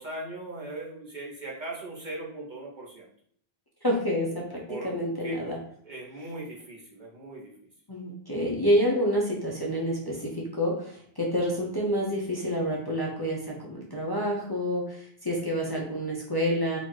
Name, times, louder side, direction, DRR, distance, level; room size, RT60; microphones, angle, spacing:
voice 1, 0.0-3.0 4.7-4.9 5.2-5.4 5.8-7.5, right 2 dB, 50° right, -3 dB, 1.3 m, -39 dB
voice 2, 3.8-4.4 4.8-5.6 7.9-16.8, equal, 25° left, -3 dB, 0.8 m, -28 dB
4.1 x 2.7 x 4.6 m, 0.62 s
omnidirectional pair, 1.0 m